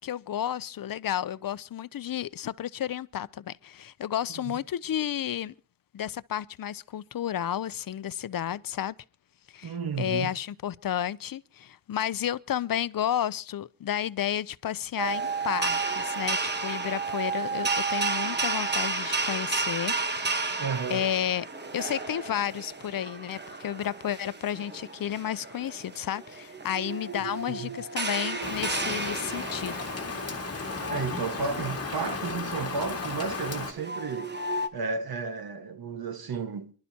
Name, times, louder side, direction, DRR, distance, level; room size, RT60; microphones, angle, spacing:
voice 1, 0.0-5.5 5.9-9.0 9.5-20.6 20.9-21.5 21.7-29.9, left 10 dB, 70° left, 0.6 m, -32 dB
voice 2, 9.6-10.3 20.6-21.1 27.6-27.7 30.9-34.4 34.7-36.7, right 5 dB, 85° right, 1.5 m, -33 dB
sound 1, 15.0-34.7, right 3 dB, 30° right, 1.1 m, -33 dB
Rain, 28.4-33.7, left 4 dB, 40° left, 2.1 m, -35 dB
28.5 x 11.5 x 2.8 m
wide cardioid pair, 165°, 36 cm